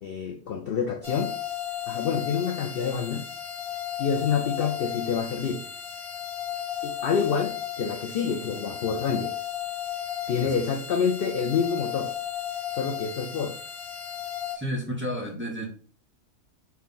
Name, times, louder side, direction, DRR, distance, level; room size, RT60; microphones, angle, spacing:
voice 1, 0.0-1.3 1.9-3.3 4.0-5.6 6.8-9.3 10.3-12.1 12.7-13.6, left 6 dB, 60° left, 0.6 m, -27 dB
sound 1, 1.0-14.5, left 9 dB, 85° left, 1.6 m, -35 dB
voice 2, 14.5-15.7, equal, 10° right, 0.8 m, -31 dB
4.3 x 2.3 x 3.8 m
omnidirectional pair, 1.4 m